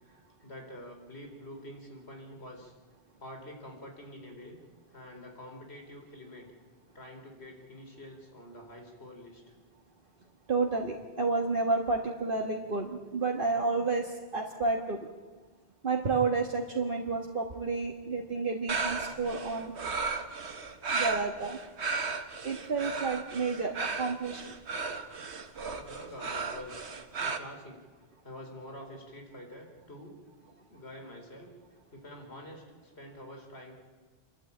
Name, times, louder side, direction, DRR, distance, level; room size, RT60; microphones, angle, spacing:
voice 1, 0.0-2.7 3.2-4.6 4.9-6.5 6.9-9.5 25.7-27.9 28.2-30.2 30.7-31.5 31.9-33.8, left 1 dB, 70° left, 2 dB, 4.5 m, -47 dB
voice 2, 10.5-15.0 15.8-19.7 20.9-21.6 22.4-24.6, right 3 dB, 50° right, 1 dB, 1.7 m, -30 dB
sound 1, 18.7-27.4, right 4 dB, 75° right, 1.6 m, -35 dB
28.5 x 12.5 x 8.7 m, 1.4 s
omnidirectional pair, 1.1 m